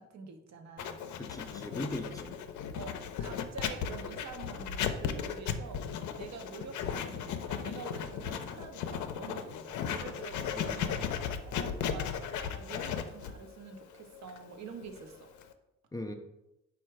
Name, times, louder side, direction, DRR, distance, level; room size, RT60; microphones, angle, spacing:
voice 1, 0.0-1.0 2.8-5.9 6.1-11.2 11.4-15.3, right 5 dB, 65° right, 5 dB, 0.7 m, -47 dB
Writing, 0.8-15.5, left 8 dB, 75° left, 0.5 m, -36 dB
voice 2, 1.2-2.4 10.5-11.2 15.9-16.1, left 1 dB, 15° left, 4 dB, 0.3 m, -40 dB
4.4 x 2.4 x 4.5 m, 0.90 s
cardioid pair, 90°, 30 cm